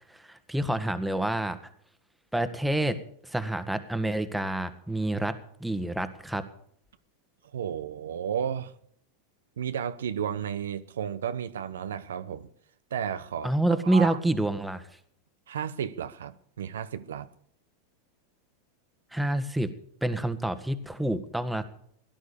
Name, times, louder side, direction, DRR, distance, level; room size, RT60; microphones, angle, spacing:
voice 1, 0.1-1.6 2.3-3.0 3.2-5.3 5.6-6.4 13.4-14.8 19.1-19.7 20.0-21.6, right 1 dB, 5° right, 1.5 m, -27 dB
voice 2, 7.5-8.7 9.6-12.5 12.9-14.2 15.5-17.3, right 8 dB, 85° right, 0.8 m, -33 dB
16.5 x 11.0 x 7.0 m
hypercardioid pair, 110°, 0 cm